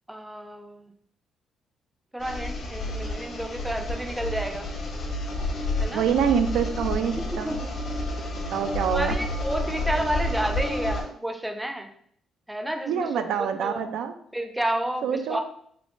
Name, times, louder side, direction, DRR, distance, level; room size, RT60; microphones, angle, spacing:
voice 1, 0.1-0.9 2.1-4.7 5.8-6.0 7.4-7.7 8.9-11.9 12.5-13.2 13.6-13.9 14.3-15.4, right 1 dB, 5° right, 4 dB, 0.5 m, -30 dB
sound 1, 2.2-11.0, left 1 dB, 60° left, 1.3 m, -30 dB
voice 2, 5.9-7.5 8.5-9.1 12.8-14.2 15.0-15.4, right 7 dB, 80° right, 8 dB, 0.3 m, -25 dB
3.5 x 3.0 x 2.5 m, 0.63 s
cardioid pair, 90°, 0 cm